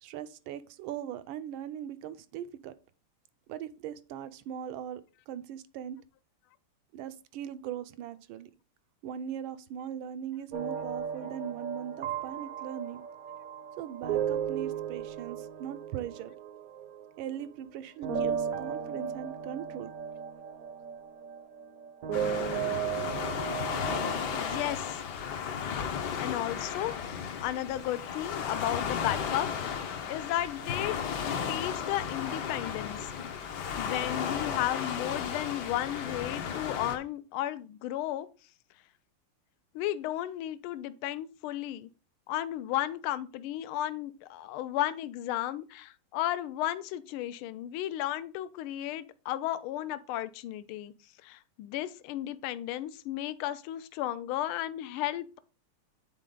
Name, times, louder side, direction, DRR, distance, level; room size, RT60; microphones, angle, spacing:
voice 1, 0.0-2.8 3.5-6.0 6.9-8.5 9.0-13.0 13.8-16.3 17.2-19.9, right 9 dB, 80° right, 1.3 m, -40 dB
sound 1, 10.5-17.7 18.0-24.7, right 8 dB, 60° right, 0.9 m, -36 dB
Waves surf, 22.1-37.0, left 7 dB, 60° left, 1.2 m, -34 dB
voice 2, 24.3-25.0 26.2-26.9 27.4-33.3 33.8-38.3 39.7-41.9 42.3-50.9 51.2-55.4, left 13 dB, 80° left, 1.4 m, -34 dB
9.1 x 4.2 x 3.7 m
omnidirectional pair, 2.4 m